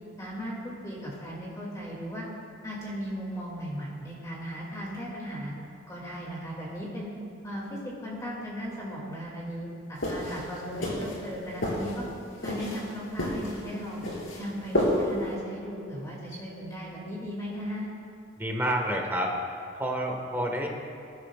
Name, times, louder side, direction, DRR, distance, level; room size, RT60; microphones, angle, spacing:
voice 1, 0.2-2.2 2.6-5.5 5.9-7.1 7.4-12.0 12.4-14.0 14.4-17.9, equal, 15° left, -5 dB, 2.5 m, -37 dB
sound 1, 10.0-15.3, left 1 dB, 80° left, 3.5 m, -31 dB
voice 2, 18.4-19.3 19.8-20.7, right 1 dB, 10° right, 0 dB, 1.6 m, -28 dB
22.0 x 13.0 x 2.5 m, 2.5 s
head